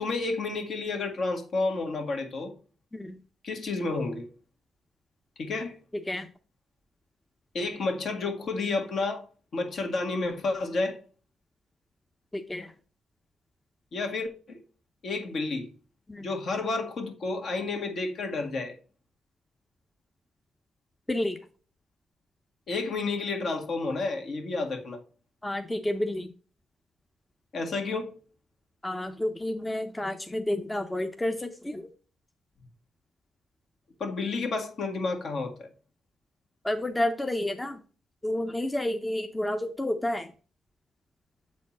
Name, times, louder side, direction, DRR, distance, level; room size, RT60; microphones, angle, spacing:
voice 1, 0.0-2.5 3.4-4.3 5.4-5.8 7.5-9.2 9.5-11.0 13.9-14.6 15.0-15.7 16.2-18.7 22.7-25.0 27.5-28.2 34.0-35.7, left 3 dB, 60° left, 1.8 m, -30 dB
voice 2, 12.3-12.7 16.1-16.3 21.1-21.4 25.4-26.3 28.8-31.9 36.6-37.8 38.2-40.3, left 1 dB, 15° left, 0.7 m, -30 dB
7.4 x 4.2 x 4.2 m
cardioid pair, 80°, 0 cm